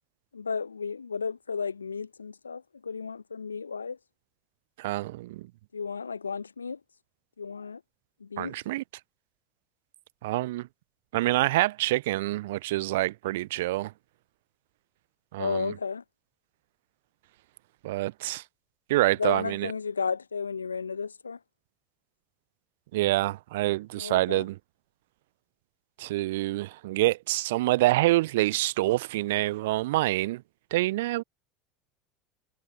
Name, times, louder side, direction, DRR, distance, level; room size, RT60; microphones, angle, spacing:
voice 1, 0.3-4.0 5.7-6.8 7.4-7.8 8.2-8.6 15.4-16.0 19.2-21.4 24.0-24.4, left 5 dB, 85° left, 1.1 m, -33 dB
voice 2, 4.8-5.5 8.4-8.8 10.2-10.7 11.1-13.9 15.3-15.7 17.8-18.4 18.9-19.7 22.9-24.6 26.0-30.4 30.7-31.2, right 18 dB, 65° right, 0.4 m, -26 dB
figure-of-eight pair, 70°, 0 cm